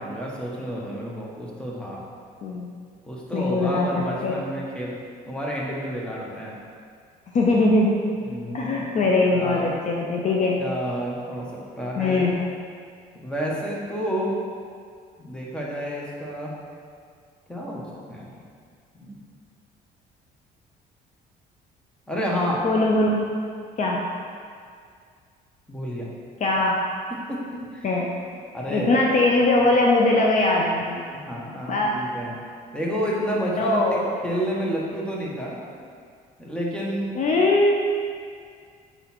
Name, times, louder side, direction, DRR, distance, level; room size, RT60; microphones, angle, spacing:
voice 1, 0.0-2.0 3.1-4.9 5.3-6.5 8.2-9.0 9.3-9.7 10.6-12.3 13.2-14.3 15.2-16.5 17.5-18.4 19.0-19.2 22.1-22.6 25.7-26.1 27.1-27.9 28.5-28.9 31.1-32.3 32.7-35.6 36.4-37.1, equal, 5° left, -4 dB, 1.3 m, -30 dB
voice 2, 3.3-3.9 4.2-4.4 7.3-8.0 8.5-10.6 12.0-12.3 22.6-23.2 23.8-24.0 26.4-26.8 27.8-28.1 28.7-31.1 31.7-32.0 33.6-34.2 37.1-37.7, left 2 dB, 45° left, -1 dB, 0.7 m, -21 dB
7.2 x 4.0 x 4.4 m, 2.1 s
cardioid pair, 110°, 17 cm